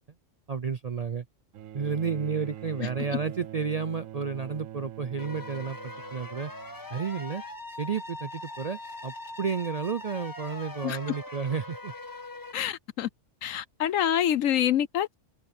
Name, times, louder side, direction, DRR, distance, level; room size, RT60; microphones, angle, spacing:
voice 1, 0.5-1.2 1.7-6.5 6.9-7.4 7.8-11.9, right 6 dB, 50° right, 0.4 m, -31 dB
Bowed string instrument, 1.5-7.0 8.1-8.2, right 12 dB, 85° right, 1.1 m, -43 dB
sound 1, 5.2-12.5, left 2 dB, 15° left, 1.5 m, -41 dB
voice 2, 12.5-13.1 13.4-15.1, left 10 dB, 85° left, 1.2 m, -26 dB
omnidirectional pair, 1.3 m